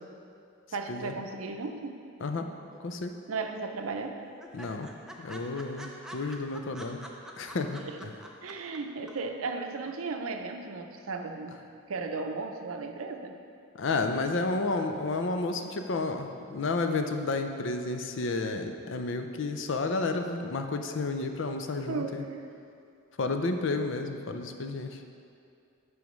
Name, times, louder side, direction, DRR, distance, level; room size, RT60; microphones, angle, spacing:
voice 1, 0.7-2.1 3.3-4.2 7.8-8.1 8.4-11.6 11.9-13.3 21.9-22.5, right 3 dB, 80° right, 5 dB, 0.6 m, -35 dB
sound 1, 2.7-3.4 3.6-3.7 4.0-4.1 4.4-8.8 9.1-9.2, right 1 dB, 5° right, 0.4 m, -45 dB
voice 2, 2.8-3.1 4.5-4.9 5.2-7.0 7.4-7.8 13.7-22.2 23.2-25.0, left 3 dB, 60° left, 6 dB, 0.5 m, -31 dB
12.0 x 4.9 x 3.1 m, 2.5 s
head